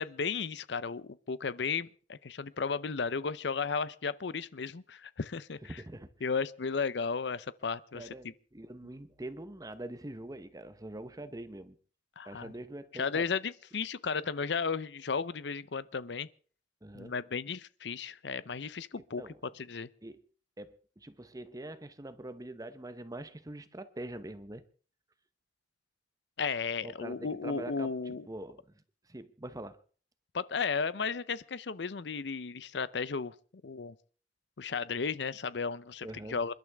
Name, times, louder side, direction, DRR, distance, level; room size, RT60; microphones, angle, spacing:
voice 1, 0.0-5.7 6.2-8.1 12.2-12.5 12.9-16.3 16.9-19.2 19.6-19.9 26.4-28.3 30.3-33.3 33.6-33.9 34.6-36.5, left 5 dB, 70° left, 0.6 m, -34 dB
voice 2, 5.6-6.1 7.9-11.8 12.2-13.3 16.8-17.1 18.9-19.4 20.0-20.2 20.6-24.6 26.8-28.8 29.1-29.8 36.0-36.4, right 1 dB, 20° right, 0.9 m, -44 dB
28.0 x 12.0 x 3.5 m
head